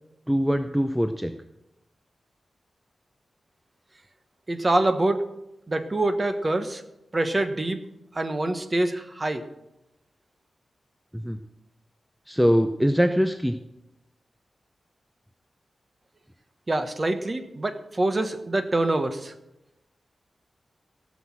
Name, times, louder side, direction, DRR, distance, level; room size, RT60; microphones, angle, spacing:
voice 1, 0.3-1.3 11.1-11.4 12.3-13.6, equal, 5° right, 7 dB, 0.6 m, -22 dB
voice 2, 4.5-5.2 5.7-6.8 7.1-7.8 8.1-9.4 16.7-19.3, right 2 dB, 30° right, 8 dB, 1.1 m, -25 dB
16.5 x 6.3 x 7.4 m, 0.90 s
wide cardioid pair, 120°, 0 cm